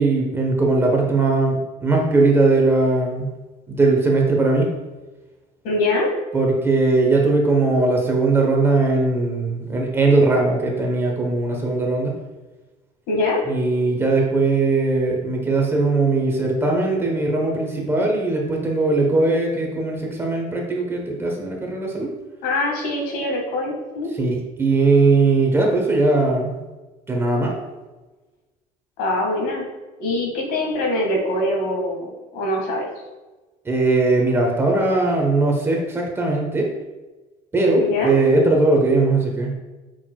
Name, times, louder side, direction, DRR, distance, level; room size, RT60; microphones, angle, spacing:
voice 1, 0.0-3.3 3.7-4.7 6.3-12.1 13.5-22.1 24.2-26.6 27.1-27.5 33.6-36.7 37.5-39.5, right 3 dB, 15° right, 0 dB, 1.0 m, -19 dB
voice 2, 5.6-6.1 13.1-13.4 22.4-24.1 29.0-29.6 30.0-32.9 37.8-38.1, left 2 dB, 75° left, 0 dB, 1.8 m, -23 dB
6.9 x 6.0 x 2.3 m, 1.2 s
cardioid pair, 150°, 16 cm